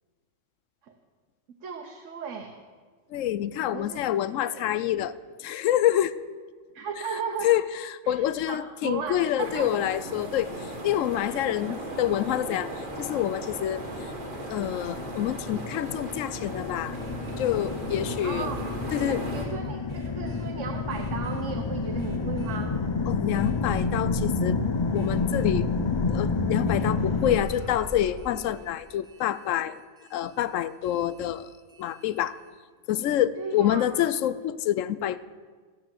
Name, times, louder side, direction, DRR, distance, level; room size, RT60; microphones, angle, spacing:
voice 1, 1.6-2.6 3.7-4.7 6.7-7.5 8.0-9.7 11.3-11.4 11.7-11.8 18.2-18.6 19.1-22.7 33.4-33.8, right 6 dB, 75° right, 3 dB, 1.3 m, -36 dB
voice 2, 3.1-5.1 5.4-6.1 7.1-14.1 14.5-17.0 17.4-18.5 18.9-19.2 23.1-24.6 24.9-25.7 26.1-29.8 30.1-31.5 31.8-32.4 32.9-35.2, left 11 dB, 85° left, 16 dB, 0.9 m, -27 dB
sound 1, 9.4-19.4, right 1 dB, 40° right, 1.7 m, -37 dB
sound 2, 11.9-27.4, left 4 dB, 40° left, 0.4 m, -30 dB
sound 3, 16.9-19.5 19.9-20.5 20.9-21.4 22.0-22.6 23.3-23.9 24.9-25.5 26.7-32.5, right 1 dB, 20° right, 2.5 m, -45 dB
15.5 x 7.0 x 7.5 m, 1.5 s
omnidirectional pair, 1.3 m